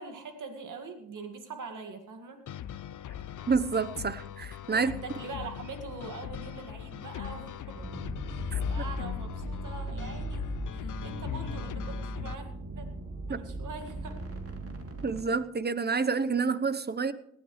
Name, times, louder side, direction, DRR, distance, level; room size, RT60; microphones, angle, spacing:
voice 1, 0.0-2.4 4.7-7.8 8.3-12.5 12.8-12.9 13.3-14.2, right 4 dB, 70° right, 6 dB, 2.1 m, -43 dB
sound 1, 2.5-12.4, left 8 dB, 70° left, 0.7 m, -38 dB
voice 2, 3.5-4.9 8.5-8.6 13.3-13.4 15.0-17.1, right 5 dB, 30° right, 14 dB, 0.9 m, -28 dB
sound 2, 7.7-15.2, right 2 dB, 45° right, 3.0 m, -39 dB
19.0 x 12.5 x 3.2 m, 0.76 s
cardioid pair, 70°, 32 cm